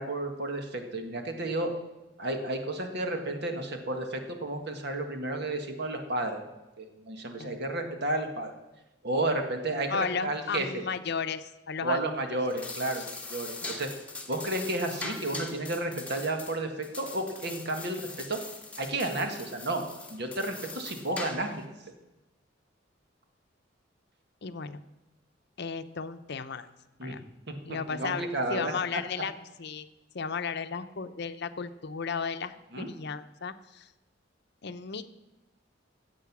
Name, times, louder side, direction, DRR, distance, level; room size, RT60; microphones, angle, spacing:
voice 1, 0.0-1.7 2.2-6.4 6.8-8.5 9.0-10.8 11.8-13.9 14.3-18.4 18.8-19.8 20.1-21.6 27.0-27.2 27.7-29.0 32.7-32.9, right 2 dB, 60° right, 5 dB, 1.7 m, -32 dB
voice 2, 9.9-12.1 13.0-13.1 13.6-13.7 24.4-24.8 25.6-26.7 27.0-27.2 27.7-28.2 28.5-29.3 29.6-29.9 30.1-33.9 34.6-35.1, left 5 dB, 60° left, 11 dB, 0.7 m, -34 dB
sound 1, 12.4-21.6, left 3 dB, 5° left, 1.3 m, -42 dB
15.5 x 7.8 x 6.1 m, 1.0 s
head